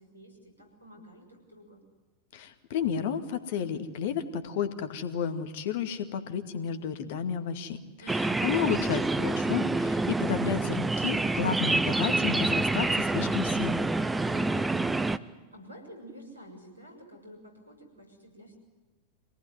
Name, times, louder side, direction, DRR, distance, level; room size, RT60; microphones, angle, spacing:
voice 1, 0.0-1.8 8.0-8.4 15.1-18.6, equal, 85° right, 3 dB, 6.9 m, -49 dB
voice 2, 2.3-7.8 8.1-13.9, left 7 dB, 50° left, 9 dB, 2.1 m, -32 dB
sound 1, 8.1-15.2, right 2 dB, 10° right, 0.9 m, -27 dB
26.0 x 18.5 x 9.5 m, 1.3 s
figure-of-eight pair, 90°, 0 cm